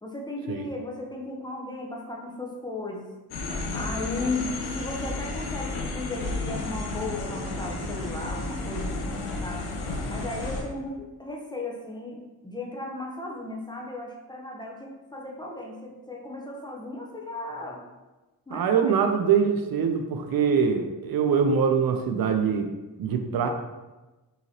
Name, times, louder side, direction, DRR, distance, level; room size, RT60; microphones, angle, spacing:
voice 1, 0.0-3.1 3.7-4.5 4.7-9.6 10.1-17.8 18.5-19.0, left 2 dB, 10° left, -1 dB, 0.7 m, -35 dB
sound 1, 3.3-10.6, left 2 dB, 80° left, 0.8 m, -32 dB
voice 2, 18.5-22.7 23.0-23.5, right 6 dB, 70° right, 6 dB, 0.5 m, -23 dB
5.6 x 2.9 x 2.8 m, 1.1 s
cardioid pair, 115°, 37 cm